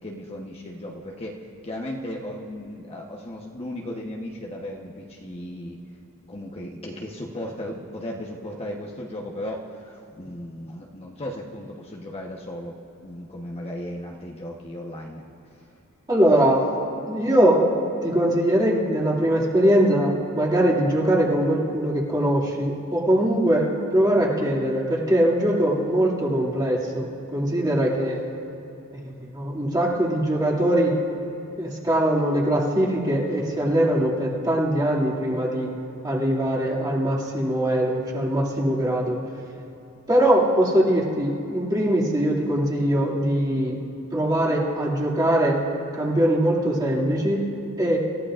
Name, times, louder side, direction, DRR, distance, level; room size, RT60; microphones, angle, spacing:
voice 1, 0.0-5.8 6.3-12.8 13.0-15.7, left 1 dB, 30° left, -2 dB, 1.1 m, -36 dB
voice 2, 16.1-16.6 17.1-28.2 29.0-30.9 31.6-35.7 36.0-39.2 40.1-43.8 44.1-45.6 45.9-47.5 47.8-48.0, right 1 dB, 20° right, -5 dB, 2.3 m, -22 dB
27.0 x 14.5 x 2.5 m, 2.9 s
head